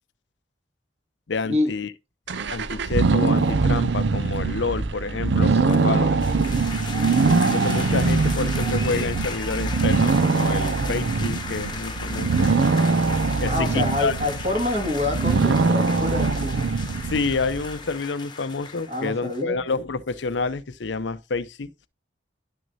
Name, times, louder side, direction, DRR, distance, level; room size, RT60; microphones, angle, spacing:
voice 1, 1.3-1.9 2.5-6.2 7.5-12.5 13.4-14.1 17.0-21.7, left 4 dB, 85° left, 0.6 m, -28 dB
sound 1, 2.3-17.7, right 4 dB, 80° right, 0.6 m, -22 dB
voice 2, 5.5-6.1 13.4-16.7 18.9-19.6, left 2 dB, 40° right, 2.5 m, -27 dB
sound 2, 6.2-19.4, left 4 dB, 25° left, 1.1 m, -36 dB
11.0 x 6.2 x 2.7 m
head